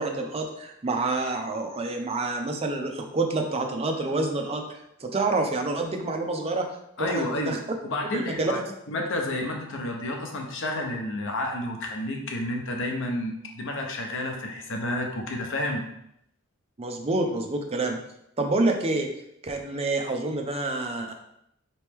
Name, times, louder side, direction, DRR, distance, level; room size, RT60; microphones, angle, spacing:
voice 1, 0.0-6.7 7.0-7.6 8.1-8.5 16.8-18.0 18.4-19.1 19.4-21.1, right 2 dB, 30° right, 3 dB, 0.5 m, -28 dB
voice 2, 7.0-8.6 8.9-15.8, left 1 dB, 65° left, 2 dB, 0.8 m, -30 dB
4.1 x 3.1 x 3.5 m, 0.77 s
head